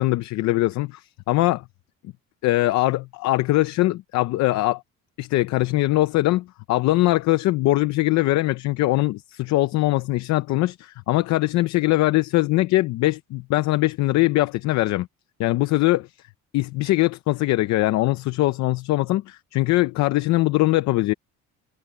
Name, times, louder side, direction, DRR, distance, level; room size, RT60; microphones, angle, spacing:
voice 1, 0.0-1.6 2.4-4.8 5.2-15.1 15.4-16.1 16.5-21.1, left 18 dB, 60° left, 0.7 m, -21 dB
cardioid pair, 175°, 31 cm